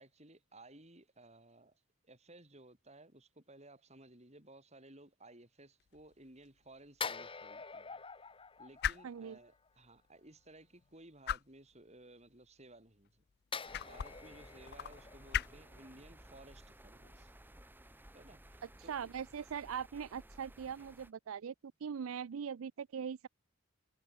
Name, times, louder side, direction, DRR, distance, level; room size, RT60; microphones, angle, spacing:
voice 1, 0.0-8.0 8.6-13.2 13.8-17.3 18.1-19.1, right 2 dB, 30° right, 5.6 m, -58 dB
sound 1, 5.8-19.4, left 10 dB, 50° left, 0.4 m, -45 dB
sound 2, 7.0-9.7 13.5-16.7 17.0-17.2, left 5 dB, 25° left, 1.1 m, -46 dB
voice 2, 9.0-9.4 18.9-21.5 21.8-23.3, right 7 dB, 75° right, 0.4 m, -41 dB
sound 3, 13.6-21.1, right 1 dB, 10° right, 2.2 m, -57 dB
head